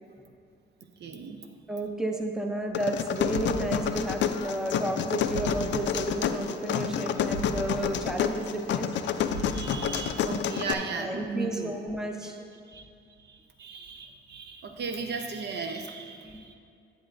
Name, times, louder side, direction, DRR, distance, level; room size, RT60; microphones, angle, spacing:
voice 1, 1.0-1.4 9.4-11.9 12.7-12.9 13.2-16.6, right 5 dB, 60° right, 5 dB, 0.7 m, -36 dB
voice 2, 1.7-8.9 11.0-12.4 16.2-16.5, right 1 dB, 5° right, 4 dB, 0.6 m, -32 dB
sound 1, 2.7-10.7, left 8 dB, 65° left, 0.4 m, -29 dB
sound 2, 3.3-4.6 4.9-5.0 5.3-6.6 6.9-7.0 7.3-9.0 9.3-10.6 10.9-11.0, right 3 dB, 80° right, 1.0 m, -40 dB
10.0 x 7.8 x 2.6 m, 2.4 s
cardioid pair, 90°, 20 cm